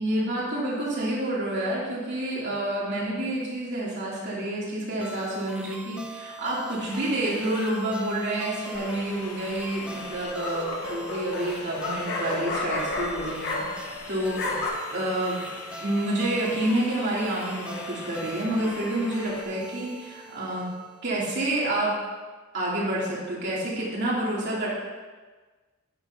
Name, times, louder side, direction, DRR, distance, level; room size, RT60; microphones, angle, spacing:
voice 1, 0.0-14.4 14.9-15.4 15.8-20.7 21.0-22.0 22.5-24.7, right 1 dB, 55° right, -6 dB, 3.0 m, -28 dB
sound 1, 5.0-21.2, right 2 dB, 5° right, 0.6 m, -43 dB
sound 2, 6.8-19.4, left 4 dB, 90° left, 1.1 m, -43 dB
sound 3, 8.7-9.2 10.1-14.0 14.2-14.7, left 2 dB, 50° left, 1.6 m, -31 dB
10.5 x 10.5 x 2.9 m, 1.3 s
head